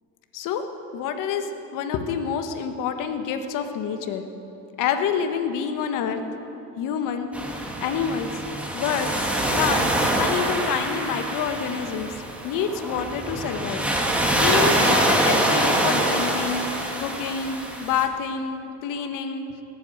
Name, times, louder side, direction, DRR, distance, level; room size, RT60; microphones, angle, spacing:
voice 1, 0.3-0.6 0.9-4.3 4.8-6.2 6.8-7.3 7.8-8.4 8.7-9.3 9.5-13.8 14.4-19.4, left 7 dB, 60° left, 7 dB, 1.3 m, -27 dB
sound 1, 7.3-18.0, right 1 dB, 5° right, 1.7 m, -24 dB
18.0 x 8.4 x 7.7 m, 3.0 s
cardioid pair, 135°, 36 cm